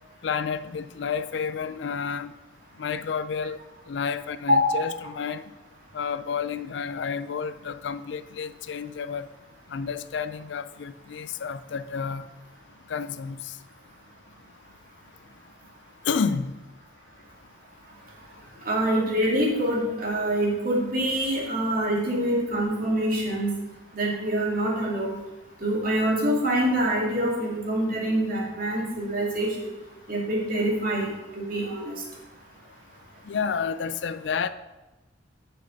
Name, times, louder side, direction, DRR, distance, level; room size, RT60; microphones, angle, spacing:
voice 1, 0.2-2.3 2.8-3.6 3.9-5.4 5.9-9.3 9.7-12.3 12.9-13.4 16.1-16.5 33.3-34.5, left 6 dB, 75° left, 13 dB, 0.4 m, -30 dB
voice 2, 18.7-23.5 23.9-25.2 25.6-29.7 30.1-31.9, right 1 dB, 50° right, -3 dB, 2.4 m, -25 dB
6.7 x 6.0 x 6.5 m, 1.1 s
head